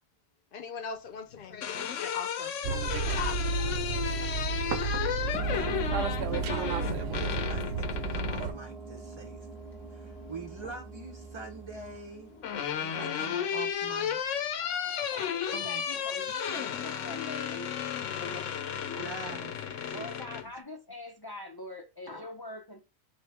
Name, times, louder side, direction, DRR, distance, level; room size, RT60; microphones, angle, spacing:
voice 1, 0.5-2.5 3.0-3.4, left 6 dB, 55° left, 0.7 m, -39 dB
sound 1, 1.3-8.6 10.0-10.7 11.9-20.5, left 9 dB, 90° left, 1.0 m, -34 dB
sound 2, 2.6-8.5, right 4 dB, 70° right, 0.8 m, -32 dB
sound 3, 5.3-13.5, right 3 dB, ahead, 0.8 m, -43 dB
voice 2, 5.3-9.5 9.9-12.3 12.6-14.2 15.5-15.9 19.0-20.1, right 3 dB, 35° right, 0.5 m, -44 dB
voice 3, 14.6-17.8 18.2-18.4 18.9-19.1 19.9-22.8, left 1 dB, 40° left, 0.3 m, -43 dB
4.0 x 3.0 x 3.3 m
omnidirectional pair, 1.2 m